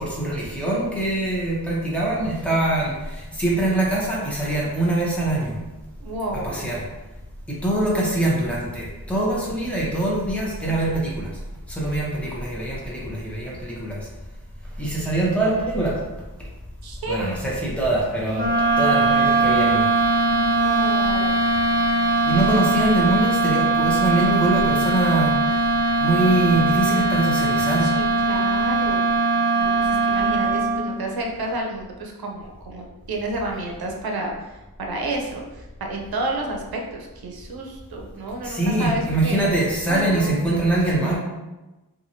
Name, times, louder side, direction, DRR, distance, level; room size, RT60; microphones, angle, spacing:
voice 1, 0.0-5.5 6.4-6.9 7.5-11.3 11.7-14.1 14.8-16.0 17.1-18.5 18.8-19.8 22.2-25.7 26.0-27.9 38.4-41.2, right 1 dB, 5° left, -5 dB, 0.8 m, -23 dB
voice 2, 6.0-6.7 11.8-12.0 16.8-17.2 20.2-21.4 27.8-29.0 29.5-34.3 34.8-39.5 39.9-40.4, right 1 dB, 70° right, 1 dB, 0.6 m, -30 dB
sound 1, 18.3-31.0, right 2 dB, 25° right, 1.2 m, -20 dB
2.8 x 2.3 x 2.7 m, 1.1 s
wide cardioid pair, 110°, 38 cm